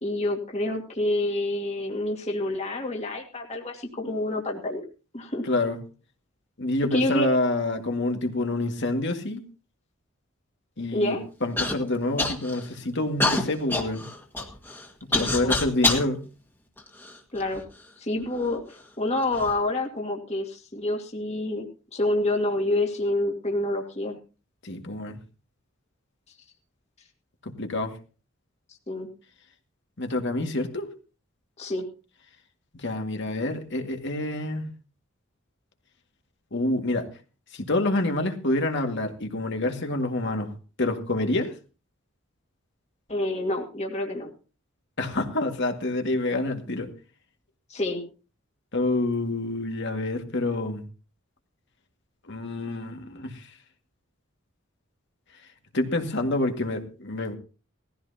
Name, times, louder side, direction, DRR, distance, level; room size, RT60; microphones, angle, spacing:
voice 1, 0.0-4.8 5.1-5.4 6.9-7.3 10.9-11.2 15.1-15.5 17.3-17.6 18.0-24.2 28.9-29.1 31.6-31.9 43.1-44.3 47.7-48.0, left 1 dB, 35° left, 1 dB, 2.2 m, -28 dB
voice 2, 5.4-5.8 6.6-9.4 10.8-14.1 15.0-16.2 24.6-25.2 27.4-27.9 30.0-30.9 32.7-34.7 36.5-37.1 37.5-40.5 40.8-41.6 45.0-46.9 48.7-50.8 52.3-53.5 55.7-57.4, left 2 dB, 60° left, 4 dB, 2.0 m, -27 dB
Human voice / Cough, 11.6-11.8 12.2-12.7 13.2-16.1 16.8-17.6 18.4-18.5 19.2-19.5, left 2 dB, 10° left, 1.9 m, -26 dB
18.5 x 15.0 x 2.8 m, 0.33 s
head